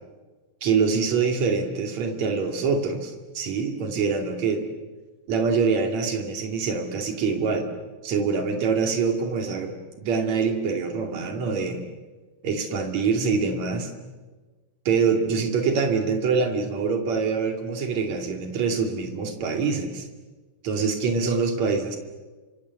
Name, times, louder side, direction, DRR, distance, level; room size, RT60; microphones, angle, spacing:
voice 1, 0.6-4.6 5.3-7.7 8.0-9.7 10.0-11.8 12.4-13.9 14.8-20.0 20.6-22.0, right 5 dB, 45° right, 4 dB, 3.3 m, -25 dB
29.5 x 25.5 x 7.3 m, 1.3 s
omnidirectional pair, 5.3 m